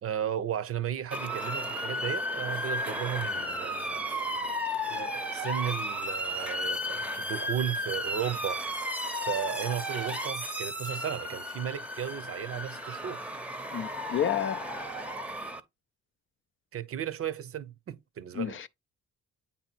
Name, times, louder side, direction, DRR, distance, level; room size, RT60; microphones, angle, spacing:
voice 1, 0.0-4.1 4.8-8.6 9.3-13.2 16.7-18.6, right 10 dB, 50° right, 0.6 m, -35 dB
Motor vehicle (road) / Siren, 1.1-15.6, equal, 5° right, 0.7 m, -34 dB
voice 2, 13.7-14.6 18.3-18.7, left 9 dB, 45° left, 0.4 m, -30 dB
8.4 x 2.8 x 4.4 m
cardioid pair, 90°, 30 cm